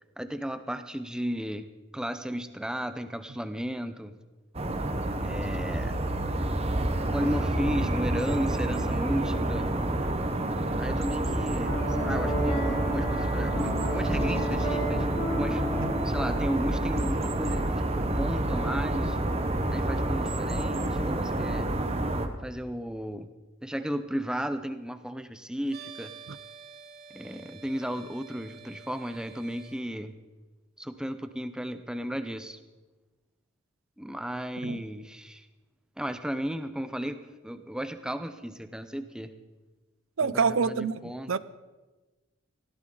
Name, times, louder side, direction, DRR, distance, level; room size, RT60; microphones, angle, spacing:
voice 1, 0.2-1.6 1.9-4.1 5.2-6.0 7.1-9.7 10.8-11.7 12.0-15.1 15.3-15.6 16.0-19.2 19.7-21.7 22.4-23.3 23.6-26.1 27.1-30.1 30.8-32.6 34.0-35.5 36.0-39.3 40.2-41.4, equal, 5° right, 10 dB, 0.7 m, -34 dB
sound 1, 4.5-22.3, right 1 dB, 30° right, 1.1 m, -28 dB
Piano, 11.7-17.0, equal, 25° left, 3.9 m, -33 dB
sound 2, 25.7-29.8, right 6 dB, 45° right, 2.8 m, -48 dB
voice 2, 40.2-41.4, right 5 dB, 70° right, 17 dB, 0.6 m, -27 dB
19.0 x 15.5 x 3.9 m, 1.2 s
head